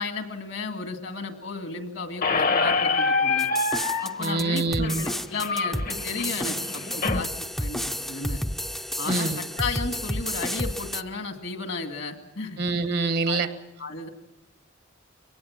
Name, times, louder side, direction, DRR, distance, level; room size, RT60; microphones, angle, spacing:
voice 1, 0.0-3.5 4.0-7.3 7.6-8.4 9.0-12.6 13.3-13.4 13.8-14.1, left 4 dB, 70° left, 6 dB, 2.2 m, -34 dB
Squeak, 2.2-7.2, left 4 dB, 45° left, 1.1 m, -26 dB
sound 1, 3.4-11.0, equal, ahead, 0.7 m, -31 dB
voice 2, 4.2-5.0 9.0-9.4 12.6-13.5, right 3 dB, 55° right, 10 dB, 1.3 m, -25 dB
23.5 x 19.0 x 7.3 m, 0.94 s
head